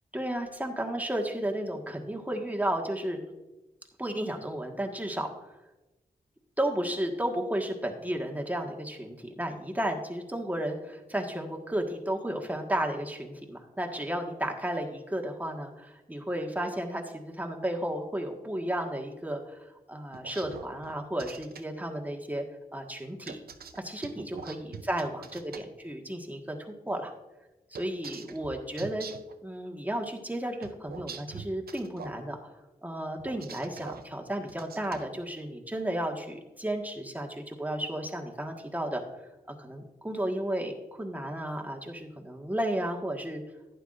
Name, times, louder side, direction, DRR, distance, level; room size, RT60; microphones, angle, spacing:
voice 1, 0.1-3.2 4.0-5.3 6.6-22.4 22.7-23.4 23.8-25.4 25.8-26.5 26.9-27.1 27.7-29.1 29.4-32.4 32.8-39.0 39.6-43.4, right 1 dB, 10° right, 1 dB, 1.6 m, -33 dB
sound 1, 20.1-21.6 23.3-25.6 27.7-29.3 30.6-32.2 33.2-34.0 34.5-35.0, right 6 dB, 80° right, 0.6 m, -43 dB
11.5 x 9.3 x 2.6 m, 1.0 s
cardioid pair, 50°, 16 cm